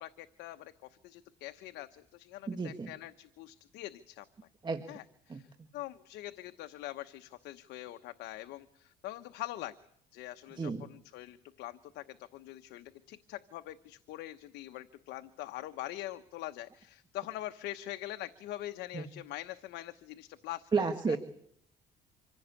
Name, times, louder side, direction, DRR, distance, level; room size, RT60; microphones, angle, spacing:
voice 1, 0.0-4.2 4.9-5.5 5.7-9.7 10.1-21.2, left 15 dB, 85° left, 8 dB, 1.1 m, -44 dB
voice 2, 2.5-2.9 4.6-4.8 5.3-5.4 10.6-10.9 18.9-19.1 20.7-21.2, right 5 dB, 25° right, 5 dB, 1.8 m, -32 dB
26.0 x 16.5 x 8.4 m, 0.69 s
cardioid pair, 110°, 17 cm